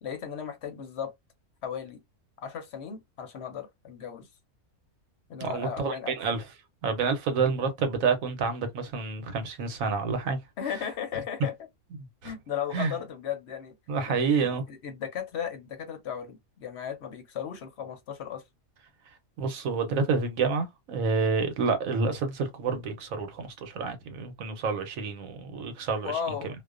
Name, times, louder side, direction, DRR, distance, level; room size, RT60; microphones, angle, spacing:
voice 1, 0.0-1.1 1.6-2.0 2.4-4.3 5.3-6.2 10.6-11.5 12.2-13.7 14.1-18.4 26.0-26.5, left 8 dB, 60° left, 0.8 m, -36 dB
voice 2, 5.4-6.4 6.8-10.4 12.2-12.3 12.7-12.9 13.9-14.6 19.4-26.1, right 5 dB, 70° right, 1.0 m, -28 dB
2.4 x 2.1 x 2.3 m
omnidirectional pair, 1.5 m